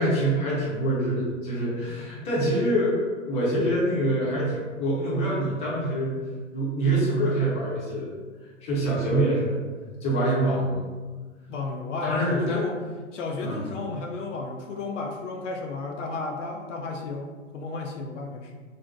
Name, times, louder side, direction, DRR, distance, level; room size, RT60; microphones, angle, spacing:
voice 1, 0.0-6.2 6.5-8.1 8.6-9.6 10.0-10.8 12.0-12.6 13.4-13.6, right 1 dB, 15° left, -6 dB, 0.7 m, -25 dB
voice 2, 10.2-10.7 11.5-12.8 13.1-18.6, left 3 dB, 65° left, 2 dB, 0.5 m, -33 dB
2.6 x 2.1 x 3.7 m, 1.4 s
hypercardioid pair, 125°, 39 cm